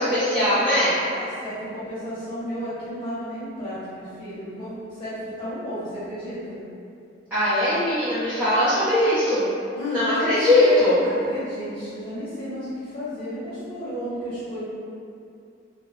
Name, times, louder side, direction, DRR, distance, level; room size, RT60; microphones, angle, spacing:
voice 1, 0.0-0.9 7.3-9.5 9.9-11.0, left 1 dB, 10° right, -16 dB, 0.7 m, -20 dB
voice 2, 1.1-6.6 9.7-14.6, left 1 dB, 40° left, -15 dB, 1.1 m, -33 dB
2.1 x 2.1 x 3.7 m, 2.5 s
head